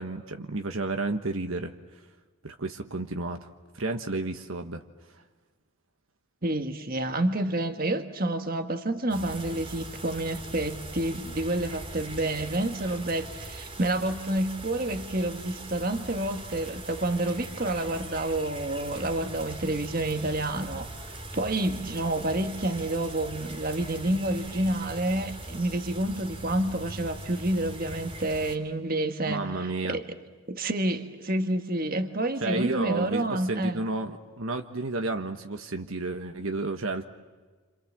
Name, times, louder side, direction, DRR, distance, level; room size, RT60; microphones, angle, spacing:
voice 1, 0.0-1.7 2.4-3.4 3.7-4.8 29.2-30.0 32.4-37.0, right 2 dB, 65° right, 1.4 m, -31 dB
voice 2, 6.4-20.9 21.3-30.1 30.5-33.8, right 1 dB, 40° right, 1.6 m, -29 dB
sound 1, 9.1-28.6, right 2 dB, 25° right, 3.0 m, -41 dB
29.5 x 26.5 x 7.4 m
head